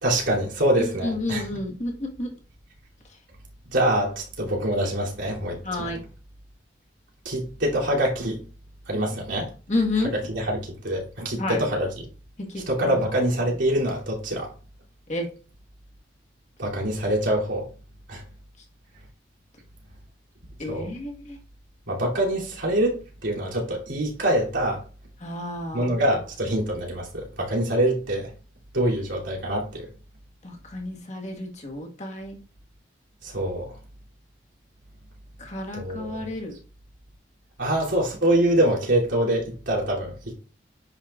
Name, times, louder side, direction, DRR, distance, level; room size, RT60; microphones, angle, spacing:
voice 1, 0.0-1.4 3.7-6.0 7.2-8.4 8.9-9.5 10.1-12.1 12.7-14.5 16.6-17.7 18.1-18.2 20.7-20.9 21.9-24.8 25.7-28.3 28.7-29.9 33.2-33.7 35.7-36.3 37.6-40.3, right 1 dB, 90° right, 2.9 m, -25 dB
voice 2, 0.8-2.3 5.6-6.0 9.7-10.1 11.4-11.6 12.4-13.0 15.1-15.3 20.6-21.4 25.2-25.9 30.4-32.4 35.4-36.6, left 2 dB, 40° left, 1.5 m, -30 dB
10.0 x 5.2 x 2.4 m
head